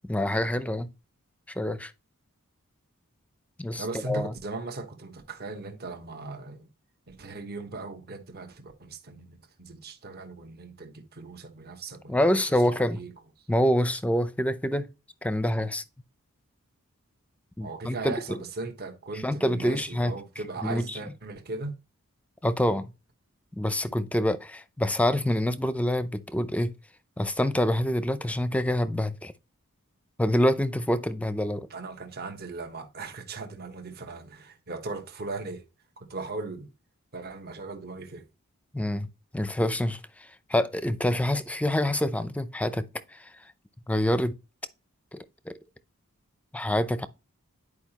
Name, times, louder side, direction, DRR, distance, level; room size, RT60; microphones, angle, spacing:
voice 1, 0.1-0.9 1.6-1.9 3.6-4.3 12.1-13.0 13.5-14.9 15.2-15.8 17.6-18.4 19.2-20.1 20.6-20.8 22.4-22.9 23.6-26.7 27.2-29.3 30.2-31.7 38.7-40.0 40.5-43.3 43.9-44.4 45.1-45.5 46.5-47.1, left 1 dB, 5° left, 0.6 m, -26 dB
voice 2, 3.8-6.7 7.1-12.4 12.8-13.1 17.6-21.8 31.7-35.6 36.0-36.7 37.1-38.3, right 3 dB, 45° right, 1.3 m, -38 dB
10.5 x 4.9 x 2.9 m
head